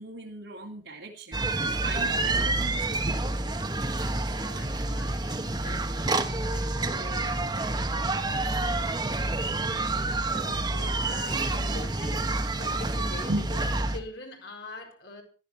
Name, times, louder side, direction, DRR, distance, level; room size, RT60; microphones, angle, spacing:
voice 1, 0.0-1.4 1.8-3.0 13.3-13.5, right 1 dB, 80° right, 3.3 m, -36 dB
sound 1, 1.3-14.0, right 2 dB, 25° right, 1.3 m, -28 dB
voice 2, 4.1-7.4 8.1-8.5 10.3-13.6 13.9-15.2, left 2 dB, 70° left, 4.5 m, -44 dB
17.0 x 13.0 x 4.5 m
head